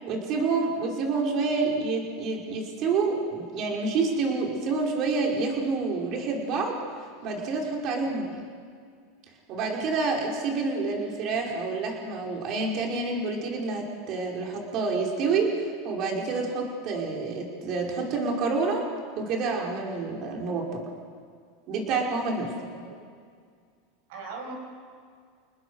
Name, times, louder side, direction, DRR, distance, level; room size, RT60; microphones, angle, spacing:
voice 1, 0.0-6.8 7.2-8.4 9.5-18.9 19.2-20.8 21.7-22.5, right 4 dB, 45° right, 0 dB, 5.3 m, -28 dB
voice 2, 22.5-23.0 24.1-24.5, right 3 dB, 70° right, 1 dB, 7.8 m, -41 dB
29.5 x 20.0 x 6.6 m, 2.1 s
supercardioid pair, 135°, 0 cm